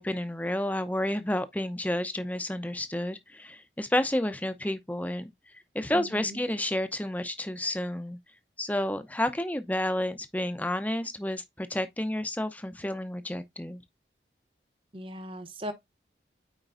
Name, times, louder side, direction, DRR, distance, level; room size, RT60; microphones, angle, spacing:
voice 1, 0.0-5.3 5.7-8.2 8.6-13.8, left 1 dB, 10° left, 0.7 m, -30 dB
voice 2, 5.9-6.4 14.9-15.7, equal, 30° right, 1.0 m, -38 dB
9.0 x 4.5 x 2.6 m
head